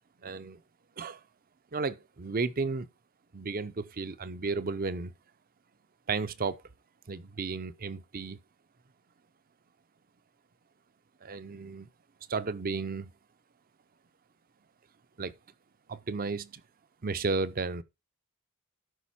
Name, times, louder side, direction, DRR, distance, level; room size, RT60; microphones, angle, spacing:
voice 1, 0.2-0.6 1.0-1.2 1.7-2.9 3.3-5.1 6.1-6.6 7.1-8.4 11.2-11.9 12.3-13.1 15.2-15.3 15.9-16.6 17.0-17.8, right 4 dB, 40° right, 0.6 m, -33 dB
13.0 x 5.4 x 4.2 m
head